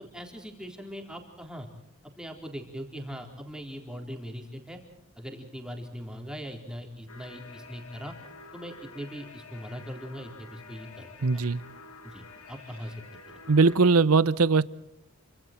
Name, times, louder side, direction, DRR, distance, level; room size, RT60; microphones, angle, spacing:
voice 1, 0.0-1.7 2.0-4.8 5.2-8.1 8.5-11.4 12.0-12.9, equal, 5° right, 3.9 m, -40 dB
sound 1, 7.1-13.8, left 4 dB, 90° left, 3.2 m, -49 dB
voice 2, 11.2-11.6 13.5-14.6, right 4 dB, 85° right, 0.9 m, -20 dB
29.0 x 26.0 x 4.5 m
head